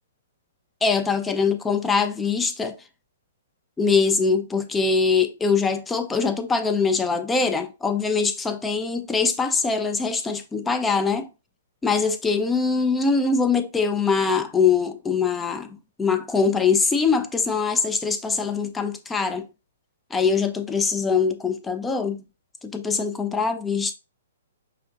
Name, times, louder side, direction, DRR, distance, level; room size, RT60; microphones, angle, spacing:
voice 1, 0.8-2.8 3.8-11.3 11.8-19.5 20.1-22.2 22.6-23.9, left 5 dB, 10° left, 0.3 m, -23 dB
5.6 x 2.2 x 2.4 m
figure-of-eight pair, 120°, 0 cm